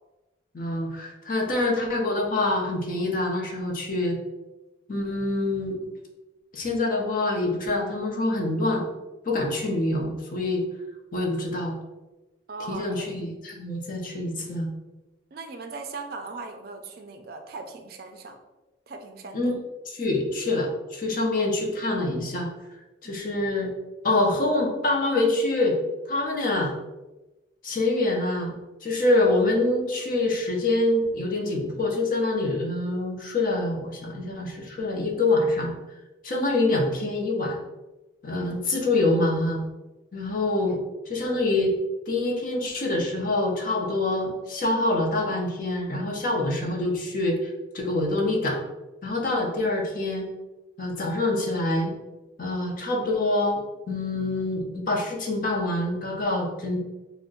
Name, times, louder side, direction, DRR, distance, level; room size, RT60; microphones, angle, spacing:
voice 1, 0.5-4.2 4.9-5.8 6.5-8.9 9.2-10.6 11.1-11.8 12.7-14.7 19.3-19.6 19.9-22.5 23.0-23.7 24.0-25.8 26.1-26.7 27.6-28.6 28.8-35.7 36.2-37.6 38.2-39.6 40.1-40.8 41.1-41.7 42.1-48.6 49.0-50.3 50.8-51.9 52.4-56.8, left 2 dB, 45° left, 1 dB, 0.5 m, -25 dB
voice 2, 12.5-13.1 15.3-18.4 18.9-19.4 23.0-23.3 38.5-38.6 40.7-40.8 49.3-49.4, right 3 dB, 55° right, 5 dB, 0.3 m, -39 dB
2.5 x 2.0 x 3.7 m, 1.1 s
head